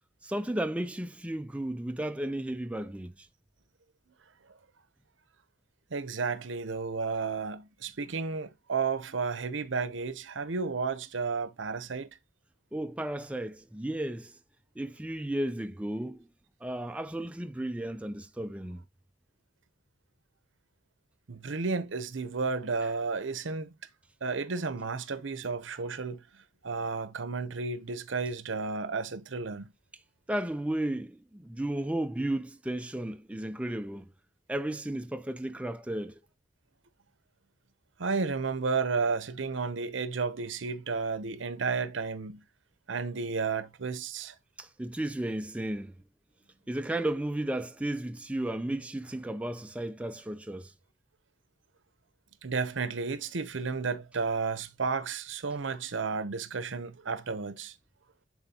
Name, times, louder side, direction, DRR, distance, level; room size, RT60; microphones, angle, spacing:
voice 1, 0.2-3.3 12.7-14.4 14.8-16.3 16.6-18.8 30.3-34.1 34.5-36.2 44.6-45.9 46.7-50.7, right 1 dB, 5° right, 0.3 m, -34 dB
voice 2, 5.9-12.1 21.3-23.7 24.2-26.2 26.6-29.7 38.0-42.4 42.9-44.3 52.4-57.7, right 4 dB, 75° right, 0.8 m, -32 dB
10.5 x 4.1 x 2.9 m
head